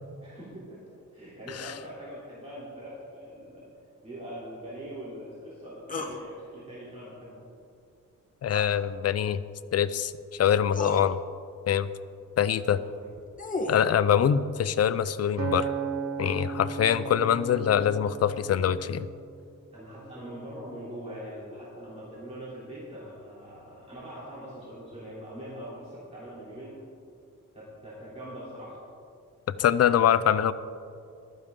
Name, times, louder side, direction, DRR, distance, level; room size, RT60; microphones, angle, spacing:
voice 1, 0.2-0.8 1.1-3.7 4.0-7.4 12.8-13.1 19.7-26.8 27.5-28.8, equal, 20° right, -9 dB, 3.1 m, -42 dB
sound 1, 5.9-6.2 8.5-8.8 10.1-10.2 10.7-11.0 13.0-13.9, left 2 dB, 25° left, 1.1 m, -33 dB
voice 2, 8.4-9.4 9.7-11.2 11.7-11.9 12.4-12.8 13.7-15.7 16.2-19.1 29.6-30.5, left 9 dB, 50° left, 14 dB, 0.5 m, -24 dB
Acoustic guitar, 15.4-19.7 20.3-20.6, right 6 dB, 55° right, 0.7 m, -36 dB
14.5 x 12.0 x 3.7 m, 2.4 s
wide cardioid pair, 155°, 32 cm